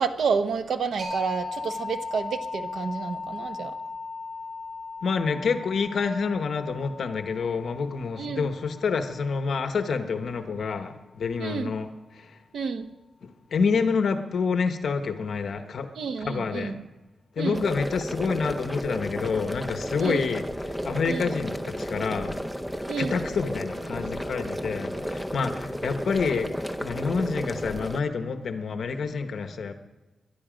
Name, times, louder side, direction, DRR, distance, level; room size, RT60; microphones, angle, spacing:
voice 1, 0.0-3.7 8.2-8.5 11.4-11.7 12.5-12.9 16.0-16.8 17.4-17.6 20.0-20.2 21.1-21.3 22.9-23.1, right 5 dB, 80° right, 8 dB, 1.0 m, -29 dB
sound 1, 1.0-10.4, left 4 dB, 45° right, 6.9 m, -38 dB
voice 2, 5.0-11.9 12.1-12.4 13.5-15.9 16.2-16.8 17.4-22.4 23.0-26.5 26.8-29.7, left 5 dB, 65° left, 8 dB, 1.0 m, -28 dB
sound 2, 17.5-28.0, equal, 5° right, 0.7 m, -33 dB
21.5 x 11.5 x 5.1 m, 1.2 s
wide cardioid pair, 145°, 0 cm